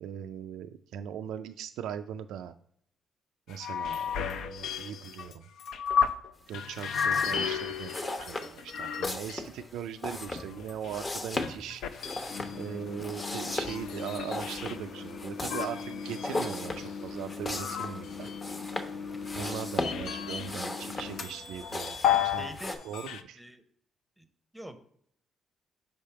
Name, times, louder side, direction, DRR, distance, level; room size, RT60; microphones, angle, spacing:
voice 1, 0.0-2.5 3.5-5.5 6.5-11.8 12.5-18.3 19.4-22.0 22.2-22.5 22.8-23.4, right 9 dB, 85° right, 8 dB, 0.3 m, -39 dB
sound 1, 3.5-6.3 6.5-9.6 10.1-14.8 15.4-18.5 19.2-20.8 21.1-22.6 22.8-23.2, left 8 dB, 80° left, 0.4 m, -33 dB
sound 2, 6.7-22.8, left 2 dB, 30° left, 0.8 m, -38 dB
sound 3, 12.3-22.0, left 5 dB, 60° left, 0.9 m, -41 dB
voice 2, 22.4-22.8 23.4-23.6 24.2-24.3 24.5-24.8, equal, 5° right, 8 dB, 0.7 m, -44 dB
5.4 x 3.4 x 5.5 m, 0.67 s
cardioid pair, 90°, 0 cm